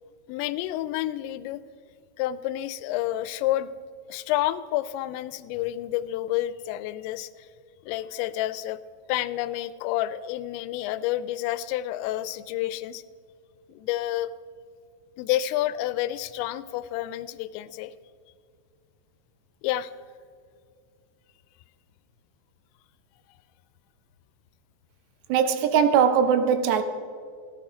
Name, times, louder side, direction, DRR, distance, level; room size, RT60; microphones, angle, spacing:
voice 1, 0.3-1.6 2.2-3.7 4.1-7.3 7.9-8.8 9.1-13.0 13.7-14.3 15.2-17.9 19.6-19.9, left 14 dB, 85° left, 2.8 m, -29 dB
voice 2, 25.3-26.8, right 7 dB, 80° right, 2.9 m, -20 dB
14.5 x 14.5 x 4.9 m
omnidirectional pair, 5.1 m